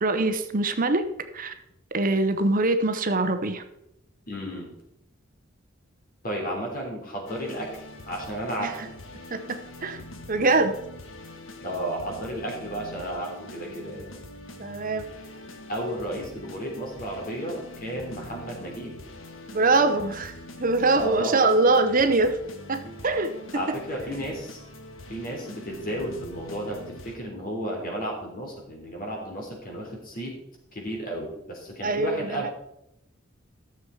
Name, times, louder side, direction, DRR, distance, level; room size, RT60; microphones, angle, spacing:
voice 1, 0.0-1.0 1.3-1.5 1.9-3.6 8.6-8.9 9.3-10.7 14.6-15.0 19.5-22.4 22.7-23.3 31.8-32.5, right 3 dB, 45° right, 9 dB, 0.8 m, -23 dB
voice 2, 4.3-4.7 6.2-7.7 8.1-8.9 11.6-14.1 15.7-19.0 20.9-21.5 22.8-23.0 23.5-24.6 25.1-30.4 30.7-32.5, right 1 dB, 45° left, 0 dB, 3.4 m, -33 dB
sound 1, 7.3-27.1, left 1 dB, 75° left, 1.4 m, -44 dB
13.0 x 7.1 x 4.6 m, 0.82 s
head